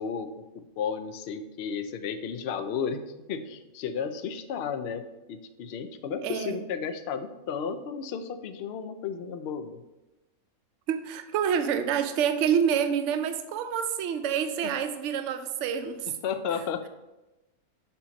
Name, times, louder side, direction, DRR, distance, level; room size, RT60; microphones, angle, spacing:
voice 1, 0.0-9.8 14.6-14.8 16.1-16.9, left 6 dB, 65° left, 9 dB, 0.7 m, -33 dB
voice 2, 6.2-6.6 10.9-16.1, right 8 dB, 65° right, 9 dB, 0.8 m, -27 dB
6.9 x 3.0 x 5.1 m, 1.0 s
omnidirectional pair, 1.5 m